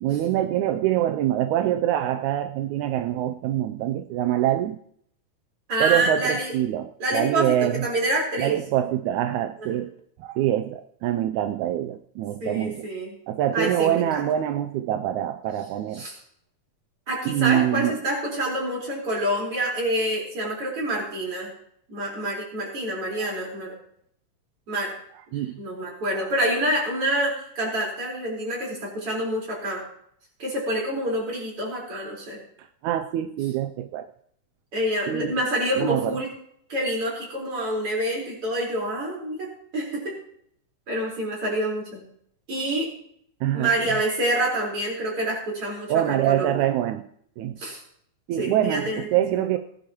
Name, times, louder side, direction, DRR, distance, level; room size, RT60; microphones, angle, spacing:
voice 1, 0.0-4.8 5.8-7.9 8.4-9.9 10.2-12.9 13.3-16.0 17.3-18.0 23.2-23.4 25.3-25.6 32.8-34.1 35.1-35.3 35.8-36.2 43.4-43.7 45.9-47.1 47.4-47.6 48.3-49.6, right 12 dB, 80° right, 1.8 m, -25 dB
voice 2, 5.7-6.5 7.0-8.6 9.6-9.7 12.4-13.1 13.5-14.3 15.9-16.2 17.1-21.5 21.9-23.7 24.7-24.9 25.3-29.8 30.4-32.4 34.7-36.3 36.7-39.5 39.7-40.2 40.9-42.0 42.5-42.9 43.5-46.7 47.6-47.8 48.4-49.5, right 1 dB, 40° right, 5.2 m, -27 dB
19.5 x 11.0 x 3.0 m
omnidirectional pair, 3.8 m